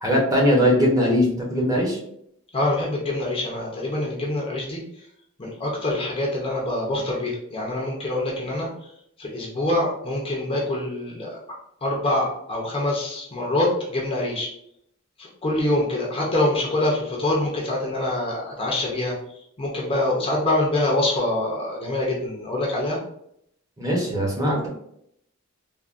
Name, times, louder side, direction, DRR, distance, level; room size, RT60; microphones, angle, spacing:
voice 1, 0.0-2.0 23.8-24.7, equal, 15° right, -3 dB, 0.7 m, -20 dB
voice 2, 2.5-5.0 5.4-8.9 9.2-11.4 11.8-14.5 15.2-19.1 19.6-23.0, left 1 dB, 25° left, -3 dB, 0.5 m, -25 dB
3.4 x 2.1 x 2.4 m, 0.72 s
head